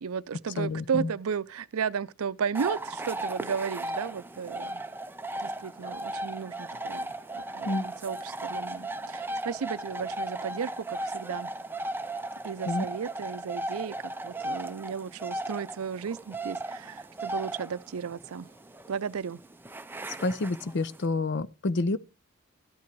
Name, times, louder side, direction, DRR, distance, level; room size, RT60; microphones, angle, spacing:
voice 1, 0.0-4.8 5.4-11.5 12.4-18.5 18.9-19.4, right 6 dB, 85° right, 0.5 m, -34 dB
voice 2, 0.6-1.1 7.6-7.9 12.7-12.9 20.2-22.0, left 2 dB, 55° left, 0.6 m, -29 dB
sound 1, 2.5-21.0, right 1 dB, 10° right, 0.5 m, -36 dB
13.0 x 8.6 x 4.6 m
head